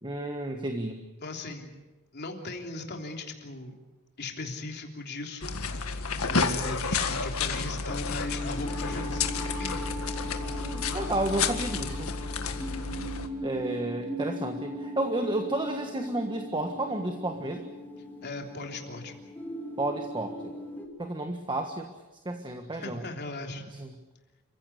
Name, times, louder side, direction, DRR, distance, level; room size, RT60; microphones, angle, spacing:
voice 1, 0.0-1.0 10.6-12.1 13.4-17.7 19.8-20.5 21.0-21.9 22.2-23.0 23.7-23.9, right 1 dB, 20° right, 5 dB, 1.5 m, -31 dB
voice 2, 1.2-1.8 2.1-3.8 4.2-5.6 6.2-9.9 18.2-19.1 22.7-23.6, left 2 dB, 50° left, 2 dB, 3.4 m, -38 dB
sound 1, 5.4-13.3, left 4 dB, 80° left, 1.8 m, -31 dB
sound 2, 7.9-20.9, equal, 10° left, 3.1 m, -39 dB
28.5 x 16.0 x 8.3 m, 1.1 s
head